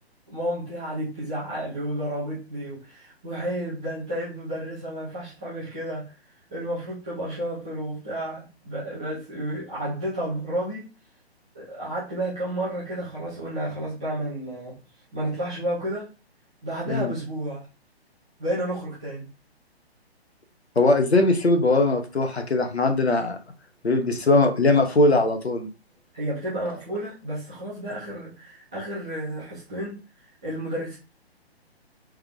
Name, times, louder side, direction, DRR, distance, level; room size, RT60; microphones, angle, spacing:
voice 1, 0.3-6.1 6.5-10.9 11.5-14.8 15.1-16.1 16.6-17.6 18.4-19.3 26.1-30.0 30.4-31.0, right 1 dB, 5° right, -11 dB, 0.4 m, -31 dB
voice 2, 20.7-23.4 23.8-25.7, left 2 dB, 75° left, 6 dB, 1.1 m, -20 dB
3.6 x 3.3 x 3.4 m, 0.32 s
figure-of-eight pair, 130°, 32 cm